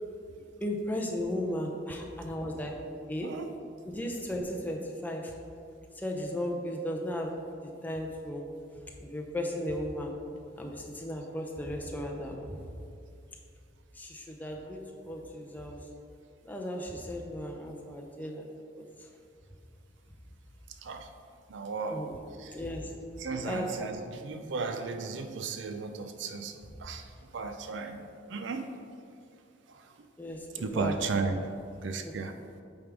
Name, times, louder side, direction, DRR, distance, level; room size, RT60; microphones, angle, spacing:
voice 1, 0.6-2.7 3.1-3.3 3.8-5.3 6.0-7.3 7.6-8.5 9.0-10.1 10.6-12.6 14.0-14.8 15.1-15.8 16.4-18.4 21.9-22.2 22.5-22.9 23.4-23.9 30.2-30.4 30.7-30.9 32.0-32.1, left 1 dB, 10° left, 0 dB, 0.6 m, -35 dB
voice 2, 20.8-21.1 21.5-22.1 22.4-22.6 23.2-28.8 29.7-29.9 30.5-31.4 31.8-32.3, right 4 dB, 65° right, 7 dB, 0.4 m, -35 dB
8.8 x 3.5 x 4.6 m, 2.4 s
head